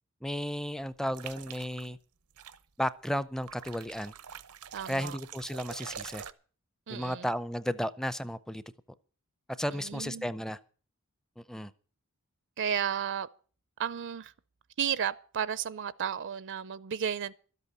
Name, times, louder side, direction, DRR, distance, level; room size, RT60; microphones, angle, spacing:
voice 1, 0.2-2.0 2.8-4.1 4.9-6.2 6.9-8.6 9.6-10.6 11.4-11.7, equal, ahead, 0.6 m, -34 dB
sound 1, 1.1-1.9 2.4-2.6 3.5-6.3, right 8 dB, 85° right, 0.8 m, -45 dB
voice 2, 4.7-5.2 6.9-7.3 9.7-10.3 12.6-13.3 13.8-14.3 14.8-17.3, right 8 dB, 55° right, 0.5 m, -33 dB
13.0 x 8.3 x 8.7 m
head